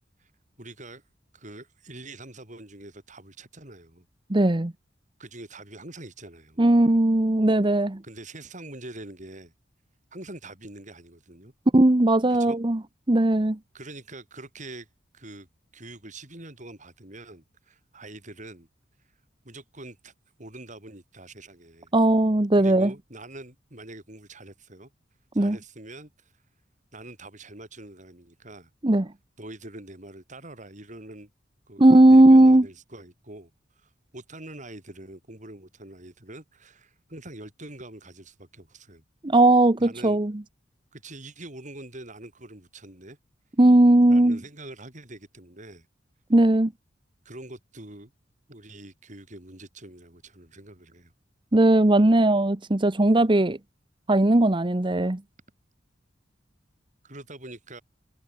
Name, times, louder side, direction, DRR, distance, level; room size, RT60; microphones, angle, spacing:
voice 1, 0.6-1.0 1.3-4.1 5.2-6.6 8.0-9.5 10.1-11.5 12.3-12.6 13.7-14.9 15.1-15.5 15.7-18.7 19.4-20.1 20.4-21.9 22.5-24.9 25.3-26.3 26.9-28.7 29.4-31.3 31.7-33.5 33.8-39.0 39.8-40.2 40.9-43.2 44.1-45.9 47.2-48.1 48.5-51.1 57.0-57.8, right 2 dB, 40° right, 5.7 m, -44 dB
voice 2, 4.3-4.7 6.6-8.0 11.7-12.8 13.1-13.6 21.9-22.9 25.4-25.6 28.8-29.1 31.8-32.6 39.2-40.3 43.6-44.4 46.3-46.7 51.5-53.6 54.1-55.2, right 1 dB, 25° right, 0.9 m, -18 dB
head